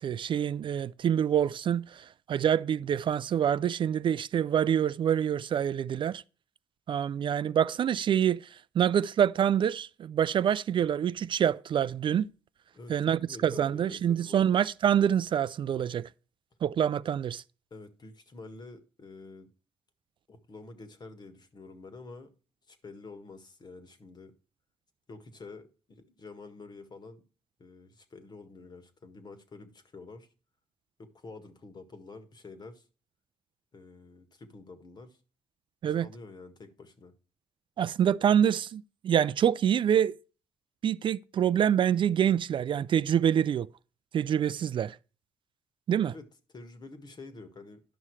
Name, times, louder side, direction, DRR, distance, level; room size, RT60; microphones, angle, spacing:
voice 1, 0.0-6.2 6.9-12.2 12.9-16.1 16.6-17.4 35.8-36.1 37.8-40.2 40.8-43.7 44.1-45.0 45.9-46.1, right 9 dB, 55° right, 0.3 m, -26 dB
voice 2, 12.7-14.5 17.7-19.5 20.3-22.3 22.7-24.4 25.1-27.2 27.6-30.3 31.0-32.8 33.7-35.2 35.8-37.1 46.1-46.3 46.5-47.8, left 3 dB, 45° left, 1.8 m, -48 dB
11.0 x 5.6 x 4.7 m
supercardioid pair, 65°, 10 cm